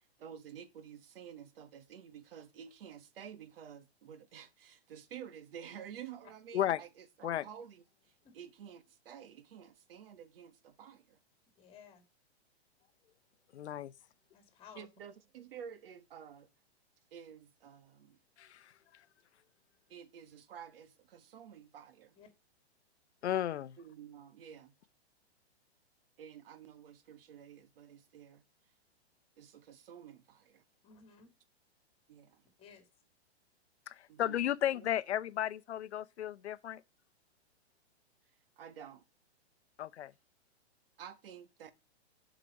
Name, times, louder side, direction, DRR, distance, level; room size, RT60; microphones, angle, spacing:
voice 1, 0.2-7.8 8.3-11.2 14.8-16.5 17.1-18.2 19.9-22.1 23.8-24.7 26.2-28.4 29.4-30.6 32.1-32.4 34.1-34.4 38.6-39.0 41.0-41.7, right 8 dB, 60° right, 1.5 m, -51 dB
voice 2, 11.6-12.0 14.3-14.9 22.1-22.3 30.8-31.3 32.6-32.9, left 6 dB, 15° left, 2.1 m, -56 dB
voice 3, 13.5-13.9 18.4-18.7 23.2-23.8 33.9-36.8 39.8-40.1, left 11 dB, 85° left, 0.7 m, -34 dB
7.8 x 5.1 x 5.2 m
hypercardioid pair, 155°, 33 cm